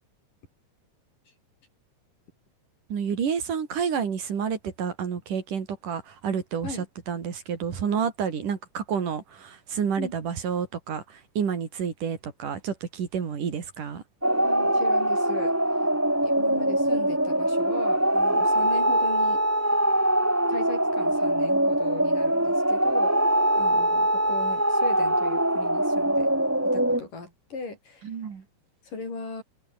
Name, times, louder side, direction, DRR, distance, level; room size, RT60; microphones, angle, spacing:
voice 1, 2.9-6.8 7.1-14.0 28.0-28.4, right 7 dB, 75° right, 4.6 m, -29 dB
sound 1, 14.2-27.0, right 1 dB, 5° right, 2.1 m, -23 dB
voice 2, 14.4-15.9 16.2-19.4 20.5-23.1 23.6-26.3 26.6-28.1 28.8-29.4, left 3 dB, 80° left, 9.4 m, -38 dB
omnidirectional pair, 3.7 m